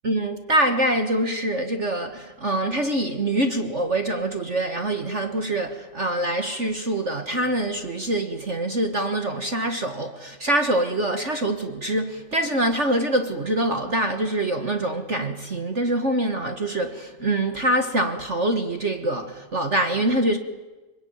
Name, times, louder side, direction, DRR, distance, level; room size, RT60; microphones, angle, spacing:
voice 1, 0.0-20.4, right 1 dB, 45° right, 0.9 m, -24 dB
25.5 x 24.0 x 9.5 m
omnidirectional pair, 3.7 m